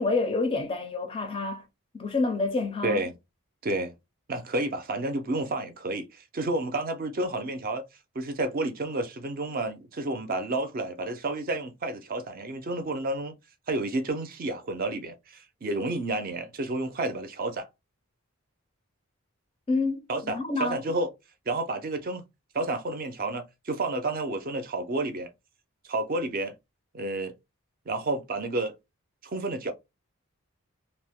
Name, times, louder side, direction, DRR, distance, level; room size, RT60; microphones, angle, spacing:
voice 1, 0.0-1.7 1.9-3.0 19.7-20.9, left 3 dB, 25° left, 0.4 m, -28 dB
voice 2, 2.8-3.1 3.6-3.9 4.3-7.8 8.1-13.3 13.7-17.7 20.1-21.1 21.5-22.2 22.5-25.3 25.9-26.5 26.9-27.3 27.9-28.7 29.2-29.7, right 2 dB, 40° right, 0.5 m, -30 dB
2.5 x 2.0 x 3.5 m
head